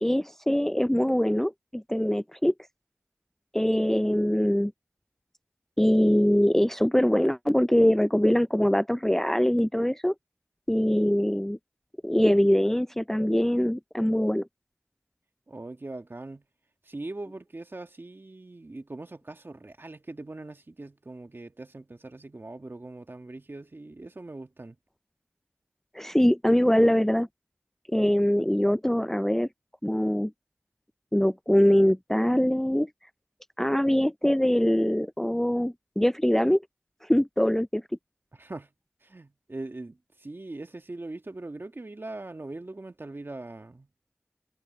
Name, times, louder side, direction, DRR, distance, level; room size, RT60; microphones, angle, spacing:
voice 1, 0.0-2.5 3.5-4.7 5.8-10.1 10.7-11.6 12.0-14.5 25.9-27.3 27.9-29.5 29.8-30.3 31.1-32.9 33.6-36.6 37.1-37.8, equal, 5° left, 0.4 m, -23 dB
voice 2, 15.5-16.4 16.8-24.8 38.3-38.7 39.0-43.9, right 2 dB, 50° right, 1.7 m, -41 dB
wide cardioid pair, 45°, 5 cm